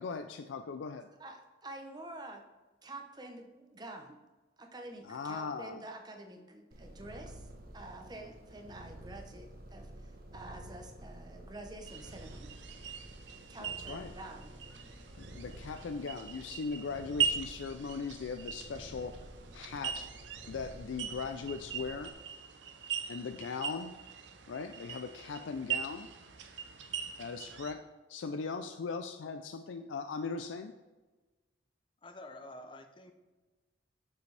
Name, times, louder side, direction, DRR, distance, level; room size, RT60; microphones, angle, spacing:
voice 1, 0.0-1.1 5.0-5.8 13.6-14.1 15.2-19.2 19.5-20.1 20.5-22.1 22.9-23.9 24.5-26.1 27.2-30.7, left 4 dB, 90° left, 7 dB, 0.4 m, -39 dB
voice 2, 1.2-2.4 2.8-4.2 4.6-12.6 13.5-14.5, right 2 dB, 20° right, 3 dB, 0.8 m, -48 dB
Purr, 6.7-22.1, right 1 dB, 50° right, 1.0 m, -50 dB
sound 1, 11.8-27.7, right 7 dB, 80° right, 0.7 m, -40 dB
voice 3, 32.0-33.1, left 1 dB, 25° left, 7 dB, 0.6 m, -48 dB
6.9 x 6.9 x 3.3 m, 1.2 s
head